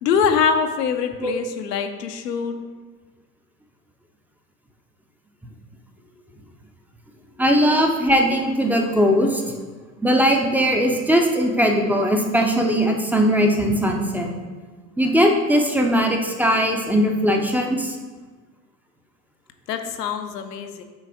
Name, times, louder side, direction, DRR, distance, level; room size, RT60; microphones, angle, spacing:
voice 1, 0.0-2.5 7.6-7.7 8.7-8.8 19.7-20.8, left 6 dB, 75° left, 6 dB, 0.7 m, -23 dB
voice 2, 7.4-9.5 10.0-14.3 15.0-17.9, equal, 5° right, 2 dB, 0.5 m, -19 dB
6.1 x 4.1 x 4.8 m, 1.4 s
figure-of-eight pair, 80°, 48 cm